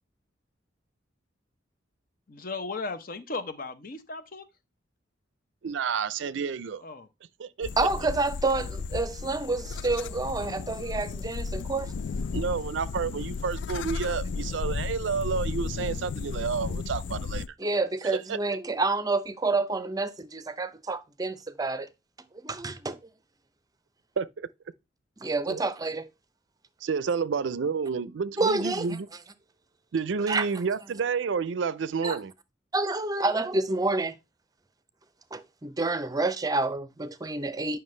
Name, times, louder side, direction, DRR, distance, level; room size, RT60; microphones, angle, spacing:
voice 1, 2.3-4.5 6.8-7.1, left 3 dB, 50° left, 0.8 m, -36 dB
voice 2, 5.6-6.8 7.4-7.7 12.3-17.4 18.3-18.4 24.2-24.5 25.5-25.6 26.8-29.1 29.9-32.3, right 5 dB, 75° right, 0.4 m, -30 dB
sound 1, 7.6-17.5, left 4 dB, 70° left, 0.4 m, -34 dB
voice 3, 7.8-11.9 17.6-21.9 22.4-23.0 25.2-26.1 28.4-28.9 30.3-30.4 32.0-32.2 32.7-34.2 35.3-37.8, right 3 dB, 20° right, 0.6 m, -28 dB
9.1 x 5.9 x 3.2 m
head